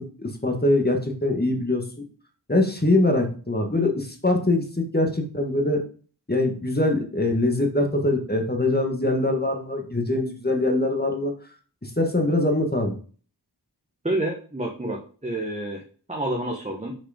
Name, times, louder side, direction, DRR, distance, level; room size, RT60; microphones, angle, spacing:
voice 1, 0.0-1.8 2.5-4.6 4.9-5.8 6.3-11.3 11.8-13.0, left 2 dB, 25° left, 3 dB, 1.6 m, -23 dB
voice 2, 14.0-15.8 16.1-16.9, right 1 dB, 15° right, 1 dB, 1.2 m, -28 dB
6.0 x 4.9 x 5.0 m, 0.41 s
wide cardioid pair, 40°, 42 cm